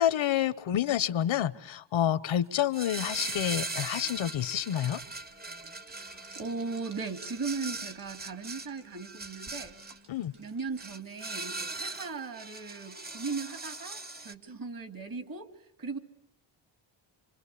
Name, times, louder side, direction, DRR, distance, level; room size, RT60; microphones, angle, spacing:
voice 1, 0.0-5.0 10.1-10.3, left 10 dB, 75° left, 16 dB, 1.1 m, -28 dB
sound 1, 2.7-10.0 10.8-14.3, right 3 dB, 20° right, 1.1 m, -40 dB
sound 2, 2.8-10.9, right 4 dB, 85° right, 3.9 m, -58 dB
voice 2, 5.9-9.8 10.4-15.5 15.8-16.0, right 4 dB, 45° right, 11 dB, 2.7 m, -38 dB
27.5 x 25.5 x 8.5 m, 0.68 s
cardioid pair, 110°, 48 cm